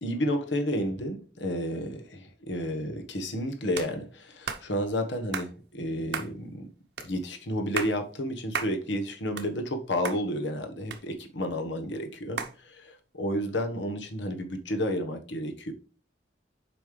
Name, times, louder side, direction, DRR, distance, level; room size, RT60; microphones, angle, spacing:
voice 1, 0.0-6.7 7.0-15.7, equal, 80° left, 1.4 m, -31 dB
sound 1, 3.7-3.9 4.5-4.6 5.3-5.5 6.1-6.3 7.0-7.1 7.6-8.0 8.5-8.7 9.1-9.8 10.0-10.2 10.9-11.5 12.4-12.6, right 5 dB, 75° right, 1.1 m, -33 dB
7.6 x 5.3 x 3.3 m
head